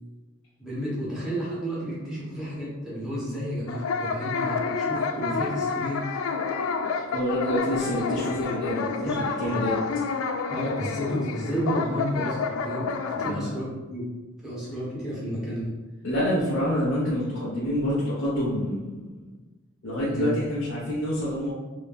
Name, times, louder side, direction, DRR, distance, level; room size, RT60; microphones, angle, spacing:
voice 1, 0.6-6.0 9.0-9.9 10.5-12.9 13.2-14.1 14.4-15.7 20.1-20.3, equal, 5° right, -9 dB, 1.1 m, -31 dB
sound 1, 3.7-13.3, left 5 dB, 80° left, 0.3 m, -29 dB
voice 2, 7.1-9.1 9.4-9.8 13.1-13.6 16.0-19.0 19.8-21.5, equal, 60° left, -9 dB, 0.8 m, -27 dB
3.0 x 2.7 x 3.5 m, 1.2 s
head